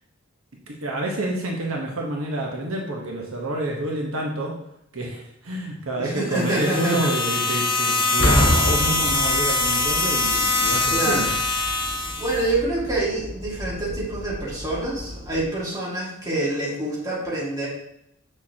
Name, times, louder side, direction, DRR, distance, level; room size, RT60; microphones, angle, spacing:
voice 1, 0.7-4.6 4.9-11.4, right 1 dB, 75° right, -1 dB, 1.2 m, -28 dB
voice 2, 5.9-7.1 10.9-11.3 12.2-17.7, right 2 dB, 20° right, -6 dB, 2.2 m, -26 dB
sound 1, 6.3-12.5, left 3 dB, 25° left, 0.6 m, -23 dB
Boom, 8.2-10.0 10.8-11.1, equal, 70° left, 1.8 m, -23 dB
sound 2, 9.1-15.5, equal, 35° right, 1.8 m, -38 dB
7.0 x 6.5 x 2.9 m, 0.79 s
head